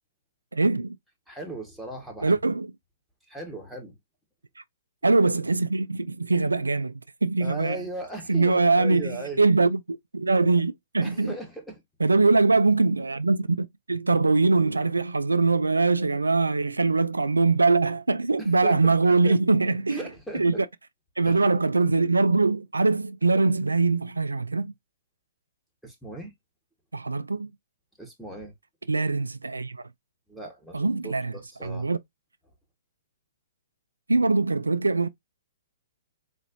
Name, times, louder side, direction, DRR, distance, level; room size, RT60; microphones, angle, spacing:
voice 1, 0.5-1.0 2.2-2.7 5.0-7.8 8.3-11.3 12.0-20.0 20.3-20.7 21.2-24.7 26.9-27.5 28.9-29.8 30.7-31.3 31.6-32.0 34.1-35.1, right 3 dB, 90° right, 0.3 m, -22 dB
voice 2, 1.3-2.4 3.3-4.0 7.4-9.4 11.0-11.8 18.4-19.4 19.9-20.6 21.2-21.4 25.8-26.3 28.0-28.5 30.3-31.9, right 1 dB, ahead, 1.3 m, -38 dB
4.1 x 2.9 x 2.5 m
figure-of-eight pair, 125°, 0 cm